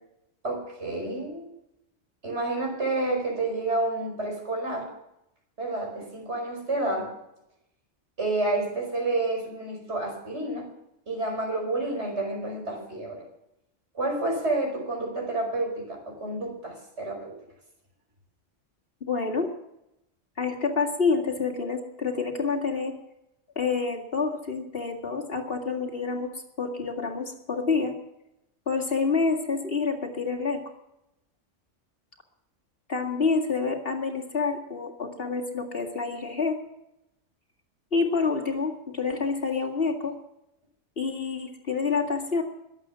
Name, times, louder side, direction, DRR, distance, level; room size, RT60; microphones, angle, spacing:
voice 1, 0.4-1.5 2.2-4.9 5.6-7.1 8.2-10.7 11.1-13.2 13.9-17.3, right 2 dB, 60° right, 1 dB, 5.5 m, -29 dB
voice 2, 19.0-19.5 20.4-22.9 23.6-27.9 28.7-30.6 32.9-36.6 37.9-40.2 41.0-42.4, left 4 dB, 50° left, 3 dB, 2.3 m, -28 dB
22.5 x 8.4 x 6.0 m, 0.85 s
omnidirectional pair, 1.3 m